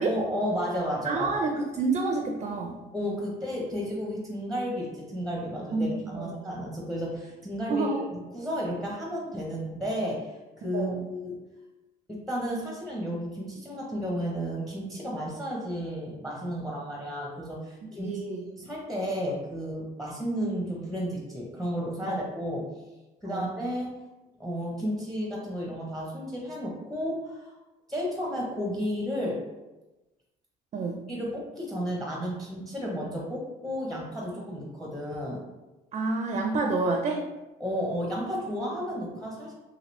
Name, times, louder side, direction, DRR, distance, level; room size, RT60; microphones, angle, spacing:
voice 1, 0.0-1.4 2.9-11.4 12.1-18.1 18.5-22.7 23.2-24.0 24.4-27.6 27.9-29.4 31.1-35.4 37.6-39.5, equal, ahead, -2 dB, 0.6 m, -32 dB
voice 2, 1.0-2.8 5.7-6.3 7.7-8.1 10.7-11.0 18.0-18.4 22.1-22.2 23.3-23.5 30.7-31.0 35.9-37.2, right 3 dB, 40° right, 2 dB, 0.4 m, -28 dB
2.9 x 2.8 x 3.0 m, 1.1 s
cardioid pair, 110°, 17 cm